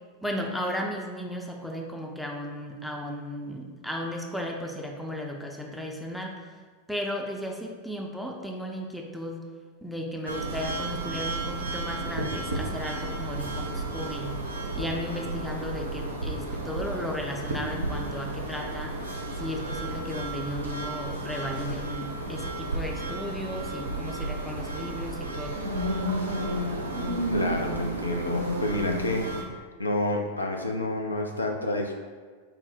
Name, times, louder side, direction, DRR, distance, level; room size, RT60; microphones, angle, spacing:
voice 1, 0.2-6.4 6.9-9.4 9.8-14.4 14.7-19.1 19.4-25.6, equal, ahead, 0 dB, 0.5 m, -35 dB
sound 1, 10.3-29.4, right 1 dB, 80° right, 0.5 m, -32 dB
voice 2, 27.3-29.3 29.8-31.9, left 1 dB, 80° left, 2 dB, 0.4 m, -29 dB
4.4 x 2.0 x 3.9 m, 1.5 s
figure-of-eight pair, 90°, 0 cm